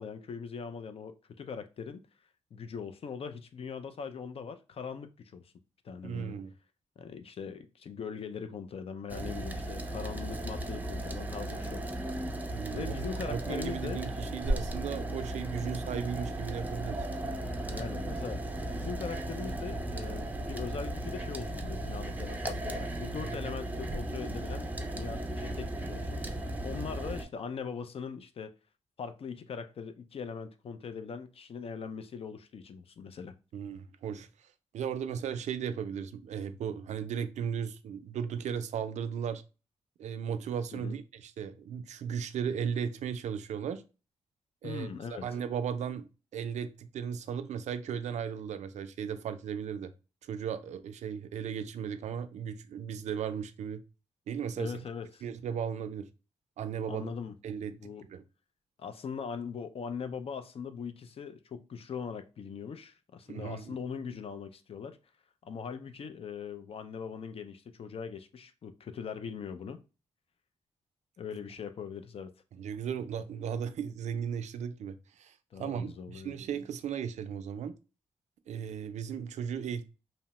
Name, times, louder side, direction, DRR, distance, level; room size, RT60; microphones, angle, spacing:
voice 1, 0.0-2.1 2.5-5.5 5.8-6.4 7.0-11.9 12.7-14.0 15.6-15.7 17.7-18.4 18.7-24.7 25.0-28.5 29.0-33.3 40.7-41.0 44.6-45.3 54.6-55.2 56.9-57.4 57.8-58.1 58.8-65.0 65.4-69.8 71.2-72.3 75.5-76.3, left 6 dB, 55° left, 0.4 m, -41 dB
voice 2, 6.0-6.5 12.5-12.9 13.3-17.1 33.5-34.3 34.7-39.4 40.0-43.8 44.6-49.9 50.2-53.8 54.3-54.7 55.2-56.1 56.6-57.1 57.4-57.7 58.1-58.2 63.3-63.7 72.6-77.7 78.5-79.8, right 7 dB, 75° right, 0.4 m, -36 dB
sound 1, 9.1-27.2, right 1 dB, 15° right, 0.4 m, -36 dB
2.8 x 2.0 x 3.0 m
cardioid pair, 75°, 12 cm